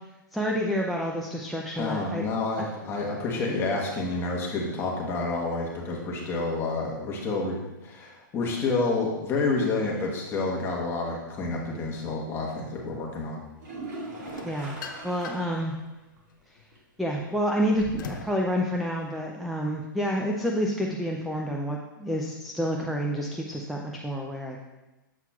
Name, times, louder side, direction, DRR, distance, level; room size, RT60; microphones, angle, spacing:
voice 1, 0.3-2.3 14.4-14.8 15.0-15.8 16.5-16.6 17.0-24.6, equal, ahead, 0 dB, 0.3 m, -29 dB
voice 2, 1.8-7.6 7.8-13.4, left 3 dB, 20° left, -2 dB, 1.2 m, -29 dB
sound 1, 13.6-15.8 16.2-16.3 16.7-16.8 20.6-20.7, right 2 dB, 55° right, 1.8 m, -40 dB
sound 2, 14.2-15.6 16.1-18.4, left 5 dB, 65° left, 0.6 m, -41 dB
7.3 x 5.8 x 2.3 m, 1.1 s
hypercardioid pair, 140°, 11 cm